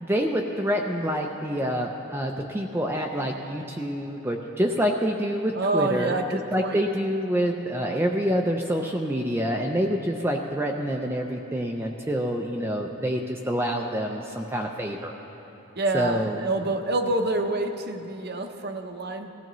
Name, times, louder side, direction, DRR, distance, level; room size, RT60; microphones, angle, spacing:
voice 1, 0.0-15.1 15.9-16.4, equal, 10° right, 1 dB, 0.5 m, -27 dB
voice 2, 5.5-6.8 15.8-19.3, right 2 dB, 45° right, 6 dB, 0.8 m, -27 dB
19.0 x 15.0 x 3.1 m, 2.9 s
head